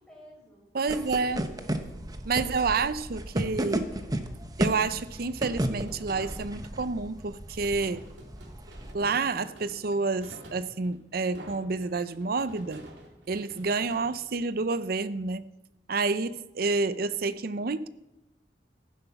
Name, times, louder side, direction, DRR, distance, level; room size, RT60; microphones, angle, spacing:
voice 1, 0.0-1.9 2.4-2.8 3.8-4.1, equal, 5° left, -5 dB, 6.6 m, -52 dB
voice 2, 0.7-1.5 2.2-3.8 4.6-8.1 8.9-12.8 13.3-15.5 15.9-17.9, right 4 dB, 55° right, 15 dB, 0.6 m, -29 dB
sound 1, 0.9-8.9, right 1 dB, 20° right, 0.9 m, -34 dB
sound 2, 5.2-6.8 7.8-14.9, right 1 dB, 75° right, 2.5 m, -49 dB
14.5 x 10.5 x 5.8 m, 0.98 s
head